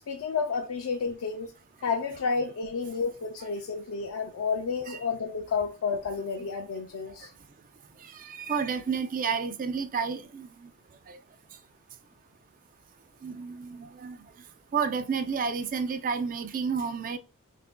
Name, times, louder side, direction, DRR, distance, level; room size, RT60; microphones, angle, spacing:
voice 1, 0.1-1.5 1.8-7.3, left 5 dB, 70° left, 0.5 m, -31 dB
voice 2, 8.1-10.7 11.1-11.2 13.2-14.2 14.7-17.2, right 6 dB, 40° right, 0.4 m, -31 dB
5.5 x 2.6 x 2.2 m
head